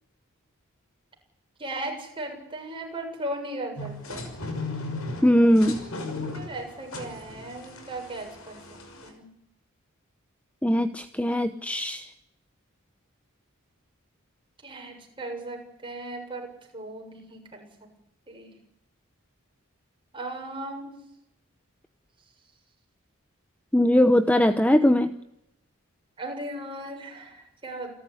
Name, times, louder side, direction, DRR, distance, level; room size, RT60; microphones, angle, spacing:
voice 1, 1.6-4.3 6.3-8.6 9.0-9.3 14.6-17.7 18.3-18.5 20.1-20.9 26.2-27.9, right 1 dB, 25° right, 1 dB, 7.3 m, -37 dB
sound 1, 3.8-9.1, left 2 dB, 70° left, 5.9 m, -37 dB
voice 2, 5.2-5.8 10.6-12.1 23.7-25.1, left 1 dB, 5° left, 9 dB, 0.9 m, -20 dB
28.5 x 13.0 x 10.0 m, 0.81 s
head